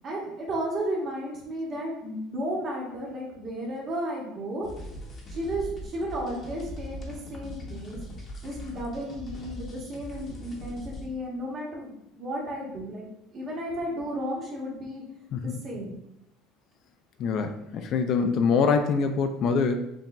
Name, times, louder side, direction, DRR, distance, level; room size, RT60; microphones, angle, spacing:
voice 1, 0.0-4.7 5.3-8.0 8.4-13.1 13.3-15.0 15.4-16.0, right 1 dB, 35° right, -3 dB, 1.2 m, -33 dB
sound 1, 4.6-11.1, left 1 dB, 30° left, 0.8 m, -40 dB
voice 2, 17.2-19.7, left 5 dB, 45° left, 7 dB, 0.3 m, -24 dB
6.9 x 2.6 x 2.2 m, 0.81 s
cardioid pair, 150°, 0 cm